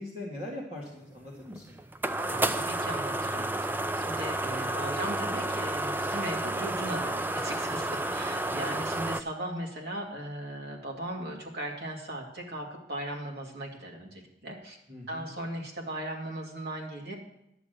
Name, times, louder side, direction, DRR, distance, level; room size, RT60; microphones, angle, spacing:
voice 1, 0.0-1.8 14.9-15.3, left 1 dB, 35° right, -4 dB, 1.9 m, -41 dB
sound 1, 1.2-9.2, right 2 dB, 10° right, 0.3 m, -31 dB
voice 2, 2.3-3.7 4.0-14.8 15.1-17.1, right 1 dB, 60° right, -1 dB, 2.4 m, -38 dB
11.0 x 7.1 x 6.6 m, 0.81 s
head